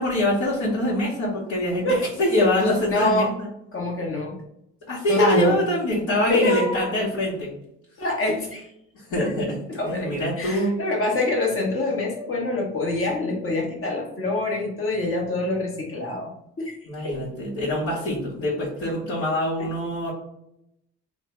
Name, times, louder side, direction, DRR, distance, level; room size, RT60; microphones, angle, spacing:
voice 1, 0.0-1.9 2.2-3.5 4.9-7.5 8.9-9.5 9.8-10.7 16.9-20.1, left 1 dB, 65° left, -8 dB, 1.3 m, -24 dB
voice 2, 1.8-2.1 2.9-3.3 3.7-4.4 5.1-5.6 6.3-6.9 8.0-8.7 9.2-9.3 9.7-16.8 17.0-17.2 19.6-19.7, left 2 dB, 45° left, 0 dB, 1.2 m, -25 dB
3.2 x 2.3 x 3.1 m, 0.79 s
cardioid pair, 90°, 30 cm